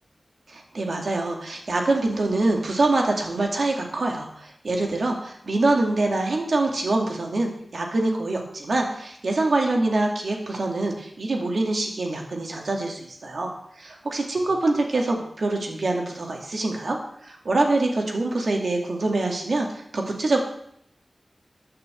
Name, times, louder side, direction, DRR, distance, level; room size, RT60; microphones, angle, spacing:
voice 1, 0.5-20.4, right 2 dB, 70° right, 1 dB, 2.1 m, -25 dB
9.7 x 6.2 x 7.8 m, 0.73 s
wide cardioid pair, 100°, 0 cm